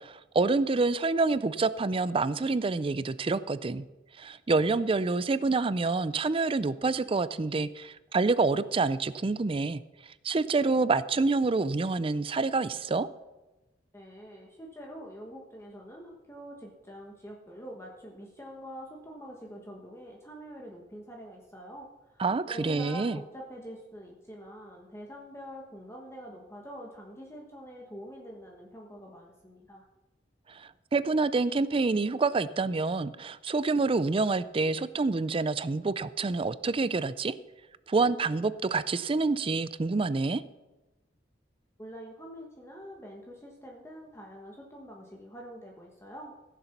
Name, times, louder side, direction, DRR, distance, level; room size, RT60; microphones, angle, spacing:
voice 1, 0.0-3.9 4.2-9.8 10.2-13.1 22.2-23.2 30.6-37.3 37.9-40.4, right 3 dB, 30° right, 16 dB, 0.4 m, -27 dB
voice 2, 13.9-22.2 22.5-29.8 41.8-46.3, equal, 15° left, -1 dB, 1.3 m, -45 dB
15.5 x 6.8 x 5.9 m, 1.1 s
head